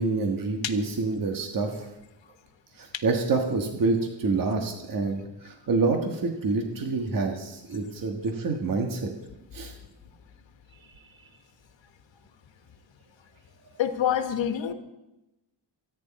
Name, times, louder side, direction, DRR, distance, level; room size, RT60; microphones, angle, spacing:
voice 1, 0.0-1.9 2.8-9.1 9.5-9.7, right 3 dB, 50° right, 3 dB, 1.6 m, -27 dB
voice 2, 13.8-14.7, left 9 dB, 85° left, 8 dB, 1.4 m, -26 dB
24.0 x 10.0 x 4.2 m, 0.95 s
wide cardioid pair, 175°, 44 cm